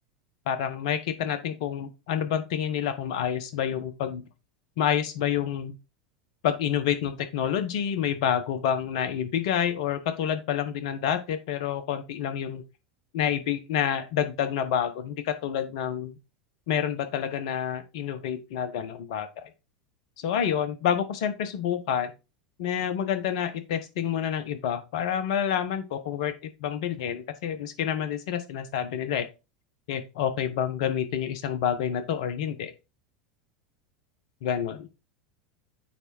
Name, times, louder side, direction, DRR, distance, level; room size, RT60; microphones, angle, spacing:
voice 1, 0.5-4.2 4.8-5.7 6.4-12.6 13.1-16.2 16.7-19.5 20.2-22.1 22.6-26.3 26.6-29.3 29.9-32.7 34.4-34.9, left 9 dB, 55° left, 10 dB, 1.2 m, -28 dB
8.9 x 3.5 x 4.4 m, 0.28 s
figure-of-eight pair, 85°, 4 cm